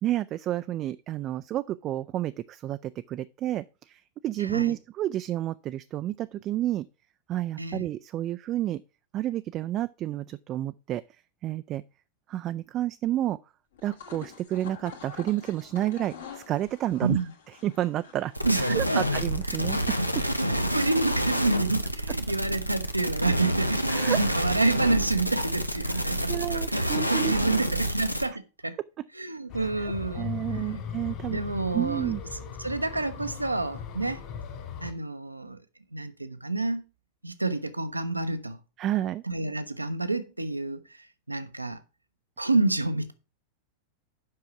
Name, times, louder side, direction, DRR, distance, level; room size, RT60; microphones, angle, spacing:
voice 1, 0.0-6.9 7.3-8.8 9.1-11.0 11.4-11.8 12.3-13.4 13.8-17.2 17.6-20.2 23.9-24.2 25.9-26.0 26.3-27.3 29.6-31.4 31.7-32.2 38.8-39.2, right 13 dB, 35° right, 0.3 m, -30 dB
voice 2, 4.4-4.7 7.6-7.8 17.0-17.3 18.4-19.1 19.5-19.6 20.5-28.8 29.1-30.8 31.3-32.1 32.6-34.2 34.8-35.6 35.9-36.8 37.2-38.6 39.2-41.8 42.4-43.1, right 2 dB, 85° right, 0.8 m, -29 dB
sound 1, 13.7-19.5, left 7 dB, 65° left, 2.0 m, -47 dB
sound 2, 18.4-28.3, equal, 90° left, 0.8 m, -28 dB
sound 3, 29.5-34.9, left 7 dB, 40° left, 2.5 m, -38 dB
7.7 x 5.7 x 5.7 m
figure-of-eight pair, 90°, 0 cm